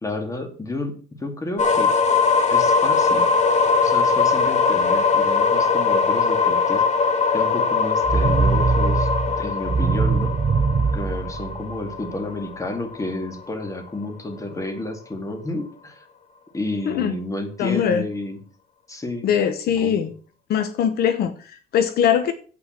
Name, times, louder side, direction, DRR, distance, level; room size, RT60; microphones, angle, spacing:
voice 1, 0.0-0.9 1.2-1.9 2.5-3.3 3.8-6.8 7.3-9.1 9.4-10.3 10.9-16.0 16.5-18.4 18.9-19.3 19.8-20.1, left 2 dB, 20° left, 6 dB, 2.2 m, -30 dB
sound 1, 1.6-13.4, left 5 dB, 45° left, 1.7 m, -21 dB
sound 2, 8.0-12.1, right 5 dB, 30° right, 0.8 m, -22 dB
voice 2, 17.6-18.1 19.2-20.1 20.5-22.3, left 8 dB, 65° left, 11 dB, 1.0 m, -21 dB
8.3 x 6.0 x 7.4 m, 0.41 s
cardioid pair, 110°, 17 cm